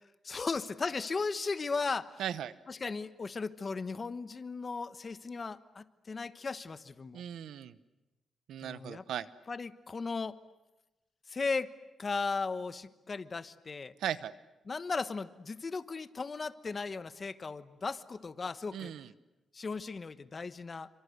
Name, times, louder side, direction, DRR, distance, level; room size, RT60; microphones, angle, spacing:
voice 1, 0.2-2.2 2.7-7.2 8.6-9.0 9.5-10.4 11.3-11.7 12.0-13.9 14.7-18.9 19.5-20.9, left 4 dB, 35° left, 12 dB, 1.1 m, -36 dB
voice 2, 2.2-2.5 7.1-7.8 8.5-9.3 14.0-14.3 18.7-19.1, right 10 dB, 90° right, 14 dB, 1.0 m, -37 dB
29.0 x 25.5 x 8.1 m, 1.0 s
cardioid pair, 115°, 0 cm